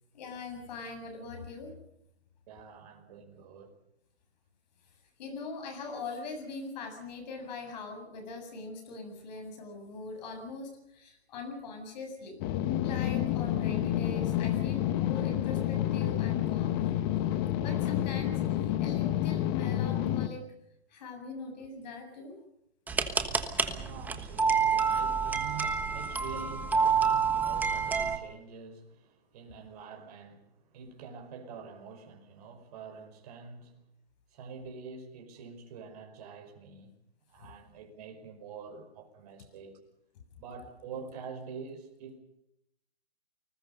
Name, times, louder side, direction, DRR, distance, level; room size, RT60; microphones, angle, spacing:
voice 1, 0.1-1.7 5.2-12.4 12.8-16.8 17.6-20.4 20.9-22.4, left 3 dB, 40° left, 6 dB, 7.5 m, -42 dB
voice 2, 2.5-3.7 22.9-33.8 34.3-36.9 37.3-39.8 40.4-42.2, right 5 dB, 35° right, 4 dB, 5.4 m, -46 dB
sound 1, 12.4-20.3, left 12 dB, 25° left, 1.1 m, -29 dB
sound 2, 22.9-28.2, right 6 dB, 5° right, 1.3 m, -28 dB
28.5 x 20.0 x 5.4 m, 0.81 s
hypercardioid pair, 150°, 32 cm